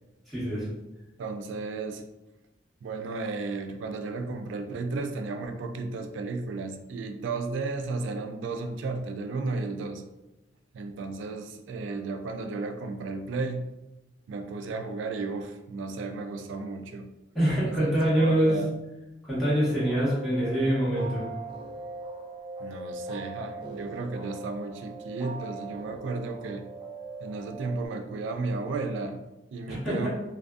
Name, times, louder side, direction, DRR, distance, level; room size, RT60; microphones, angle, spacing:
voice 1, 0.3-0.6 17.3-18.6 19.3-21.2 29.7-30.1, right 1 dB, ahead, -11 dB, 1.0 m, -25 dB
voice 2, 1.2-2.0 2.8-10.0 10.7-13.6 14.3-17.1 17.6-17.9 18.2-18.7 22.6-26.6 27.2-29.2 29.5-30.1, right 3 dB, 80° right, 7 dB, 0.3 m, -34 dB
sound 1, 19.4-27.9, right 2 dB, 25° right, 0.6 m, -40 dB
2.5 x 2.3 x 2.3 m, 0.97 s
head